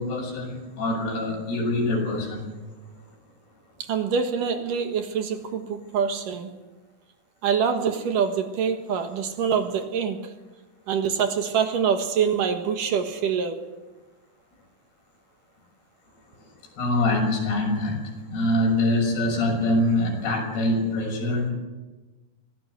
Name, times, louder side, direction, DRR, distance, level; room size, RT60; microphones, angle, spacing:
voice 1, 0.0-2.5 16.8-21.5, left 1 dB, 90° left, 1 dB, 8.5 m, -24 dB
voice 2, 3.8-6.5 7.4-10.3 10.9-13.6, right 7 dB, 65° right, 6 dB, 2.8 m, -25 dB
23.0 x 17.0 x 8.0 m, 1.2 s
omnidirectional pair, 4.5 m